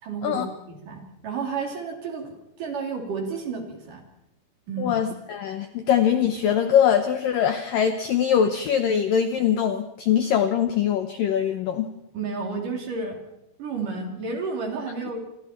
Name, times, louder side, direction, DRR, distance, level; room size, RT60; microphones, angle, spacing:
voice 1, 0.0-4.0 4.7-5.0 12.1-13.2 13.6-15.2, right 4 dB, 45° right, 2 dB, 4.5 m, -31 dB
voice 2, 4.8-11.9, left 8 dB, 85° left, 8 dB, 1.9 m, -22 dB
28.5 x 26.0 x 4.5 m, 0.84 s
omnidirectional pair, 5.6 m